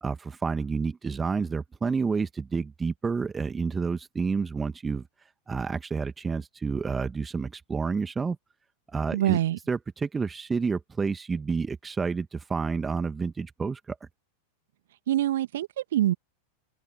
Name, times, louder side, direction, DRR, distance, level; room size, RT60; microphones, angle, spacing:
voice 1, 0.0-5.0 5.5-8.4 8.9-9.4 9.7-14.0, right 5 dB, 15° right, 1.8 m, -29 dB
voice 2, 9.1-9.6 15.1-16.1, right 13 dB, 60° right, 2.4 m, -25 dB
open air
figure-of-eight pair, 90°, 0 cm